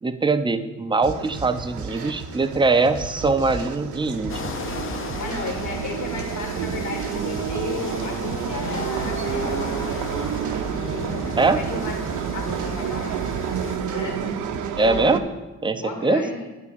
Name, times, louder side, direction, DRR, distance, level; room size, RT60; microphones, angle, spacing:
voice 1, 0.0-4.5 11.4-11.6 14.8-15.2 15.6-16.2, right 3 dB, 15° right, 9 dB, 0.5 m, -22 dB
sound 1, 1.0-14.7, right 4 dB, 50° right, 1.1 m, -38 dB
sound 2, 1.1-15.2, right 8 dB, 80° right, 0.7 m, -30 dB
sound 3, 4.3-13.8, left 5 dB, 45° left, 0.7 m, -36 dB
voice 2, 5.2-9.8 10.7-13.3 13.7-14.4 14.8-15.2 15.8-16.4, left 3 dB, 75° left, 2 dB, 2.1 m, -34 dB
9.0 x 3.7 x 6.8 m, 1.1 s
cardioid pair, 90°, 30 cm